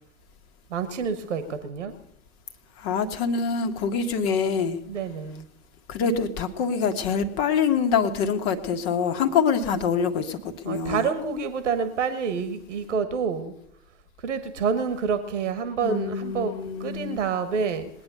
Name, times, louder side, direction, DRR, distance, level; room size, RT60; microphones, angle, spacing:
voice 1, 0.7-1.9 4.9-5.5 10.6-13.5 14.2-17.9, right 6 dB, 75° right, 1.3 m, -28 dB
voice 2, 2.8-4.8 5.9-11.1 15.8-17.2, left 6 dB, 55° left, 1.7 m, -25 dB
20.0 x 9.5 x 6.7 m
figure-of-eight pair, 80°, 37 cm